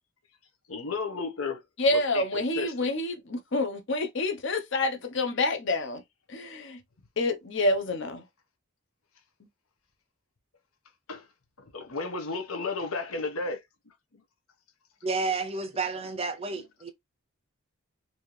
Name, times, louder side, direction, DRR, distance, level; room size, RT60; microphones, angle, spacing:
voice 1, 0.7-1.6 1.9-2.9 11.1-11.3 11.6-13.9 16.5-16.7, left 4 dB, 75° left, 1.0 m, -34 dB
voice 2, 1.8-6.0 6.3-6.8 7.2-8.2, left 2 dB, 55° left, 0.8 m, -28 dB
voice 3, 15.0-16.9, right 3 dB, 25° right, 0.5 m, -31 dB
4.3 x 2.8 x 3.1 m
head